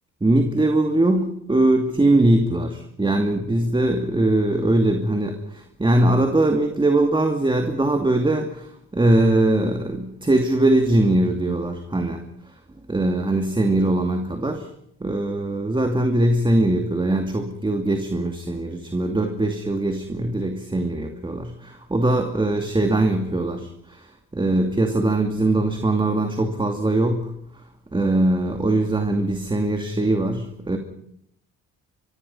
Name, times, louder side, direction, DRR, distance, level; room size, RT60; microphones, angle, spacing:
voice 1, 0.2-12.5 12.9-14.7 15.0-27.3 27.9-30.8, right 2 dB, 15° right, 5 dB, 2.5 m, -21 dB
25.5 x 23.5 x 5.6 m, 0.71 s
cardioid pair, 90°, 30 cm